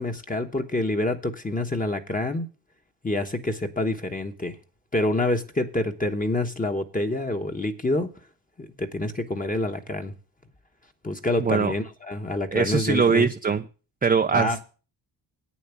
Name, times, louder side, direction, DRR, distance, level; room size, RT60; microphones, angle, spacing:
voice 1, 0.0-2.5 3.0-4.5 4.9-8.1 8.6-10.1 11.0-13.3 14.3-14.6, left 2 dB, 15° left, 1.1 m, -27 dB
voice 2, 11.4-11.7 12.5-13.7 14.0-14.6, right 5 dB, 20° right, 0.5 m, -22 dB
8.6 x 7.3 x 7.1 m
cardioid pair, 95°, 48 cm